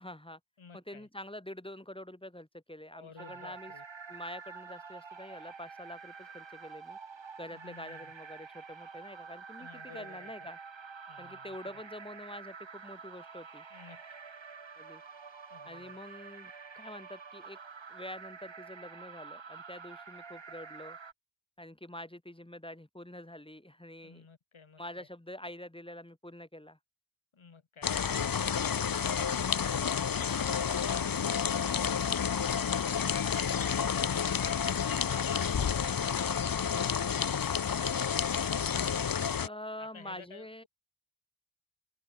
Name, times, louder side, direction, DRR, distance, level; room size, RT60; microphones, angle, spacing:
voice 1, 0.0-0.4 0.7-3.7 4.1-7.0 7.4-9.7 9.9-10.6 11.2-13.6 14.8-15.0 15.7-17.6 17.9-21.0 21.6-24.2 24.8-26.8 39.4-40.6, left 1 dB, 10° left, 2.4 m, -46 dB
voice 2, 0.6-1.1 2.9-3.8 7.4-8.1 9.6-10.5 11.1-11.7 13.7-14.0 15.5-16.0 24.0-25.1 39.8-40.7, left 5 dB, 70° left, 7.6 m, -53 dB
sound 1, 3.2-21.1, right 5 dB, 65° right, 3.7 m, -48 dB
sound 2, 27.8-39.5, left 7 dB, 45° left, 0.9 m, -30 dB
cardioid pair, 50°, 49 cm